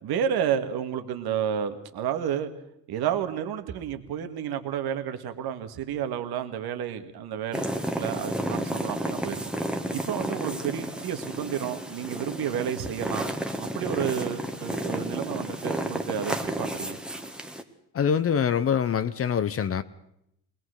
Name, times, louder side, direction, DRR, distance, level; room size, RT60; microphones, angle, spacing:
voice 1, 0.0-2.5 2.9-9.4 9.9-13.3 13.7-17.0, right 9 dB, 65° right, 1.9 m, -31 dB
sound 1, 7.5-17.6, right 1 dB, ahead, 1.5 m, -32 dB
voice 2, 17.9-19.8, left 7 dB, 35° left, 0.8 m, -24 dB
21.0 x 20.0 x 6.5 m
cardioid pair, 100°, 41 cm